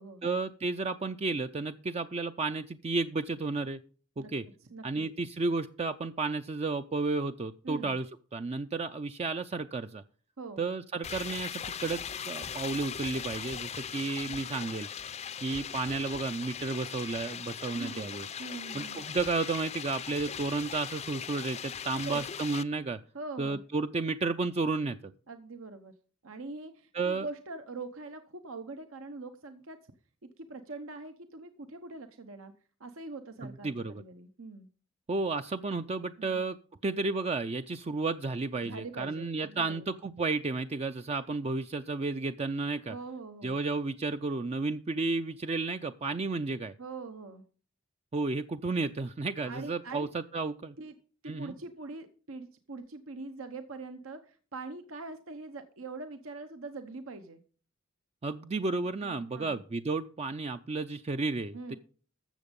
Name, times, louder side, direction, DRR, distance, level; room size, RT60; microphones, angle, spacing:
voice 1, 0.2-3.8 4.2-4.4 4.8-8.1 8.3-10.0 10.6-14.9 15.4-18.3 18.7-23.0 23.4-25.1 26.9-27.3 33.4-34.0 35.1-36.6 36.8-42.9 43.4-46.7 48.1-50.7 51.3-51.5 58.2-61.8, right 3 dB, 30° right, 9 dB, 0.4 m, -32 dB
voice 2, 7.6-7.9 10.4-10.6 17.7-18.1 18.4-19.0 22.1-22.2 23.1-23.6 25.3-25.9 26.2-29.8 30.4-32.5 32.8-34.7 36.2-36.4 38.6-39.9 42.9-43.5 46.8-47.4 49.4-50.1 50.8-50.9 51.2-57.4 59.0-59.6 61.5-61.8, right 3 dB, 75° right, 8 dB, 1.0 m, -43 dB
sound 1, 11.0-22.6, left 8 dB, 30° left, 0.5 m, -39 dB
13.5 x 7.3 x 5.2 m, 0.41 s
head